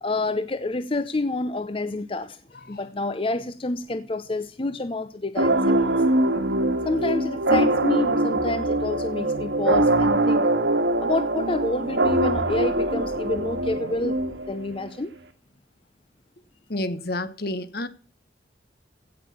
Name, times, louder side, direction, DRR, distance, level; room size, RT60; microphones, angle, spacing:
voice 1, 0.0-2.4 2.7-5.9 6.8-10.5 11.0-14.2 14.5-15.1, left 2 dB, 30° left, 0.7 m, -28 dB
sound 1, 5.4-14.8, right 1 dB, 80° right, 1.9 m, -23 dB
voice 2, 16.7-17.9, left 1 dB, 55° left, 1.3 m, -30 dB
16.0 x 6.5 x 7.2 m
head